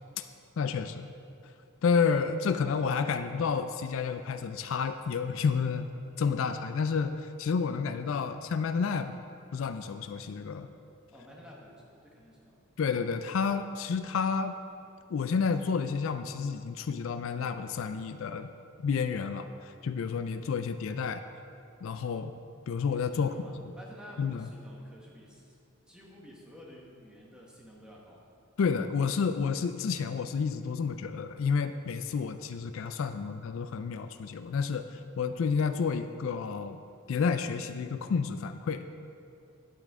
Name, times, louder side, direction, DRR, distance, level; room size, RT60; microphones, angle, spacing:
voice 1, 0.6-1.1 1.8-5.9 6.2-9.2 9.5-10.7 12.8-14.6 15.1-18.5 18.8-21.2 21.8-22.3 22.7-23.4 24.2-24.5 28.6-36.8 37.1-38.9, left 5 dB, 70° left, 9 dB, 0.4 m, -30 dB
voice 2, 11.1-12.6 23.2-25.6 25.9-28.2, equal, 5° right, -4 dB, 1.3 m, -51 dB
10.5 x 8.4 x 3.6 m, 2.5 s
head